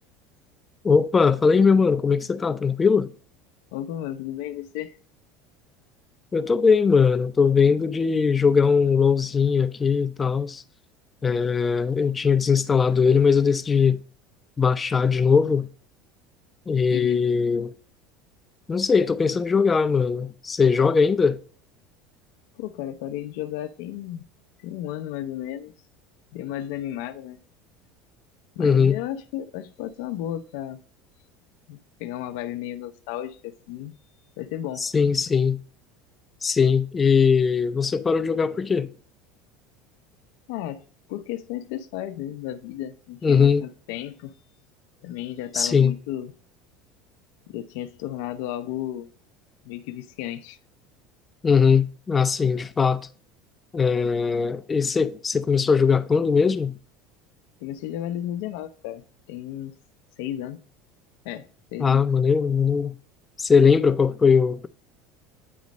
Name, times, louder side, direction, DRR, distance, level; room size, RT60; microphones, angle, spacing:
voice 1, 0.8-3.1 6.3-10.6 11.2-14.0 14.6-15.7 16.7-17.7 18.7-21.4 28.6-29.0 34.8-35.6 36.4-38.9 43.2-43.6 45.5-45.9 51.4-53.0 53.7-56.7 61.8-63.0 63.4-64.7, left 5 dB, 20° left, 0.4 m, -20 dB
voice 2, 3.7-5.0 16.9-17.2 22.6-24.3 24.6-25.7 26.3-27.4 28.5-30.8 31.7-34.0 34.4-34.8 40.5-40.8 41.1-44.3 45.0-46.3 47.5-49.1 49.6-50.6 57.6-59.7 60.2-60.6 61.2-62.1, left 12 dB, 75° left, 0.5 m, -33 dB
9.3 x 3.1 x 5.2 m
cardioid pair, 145°, 0 cm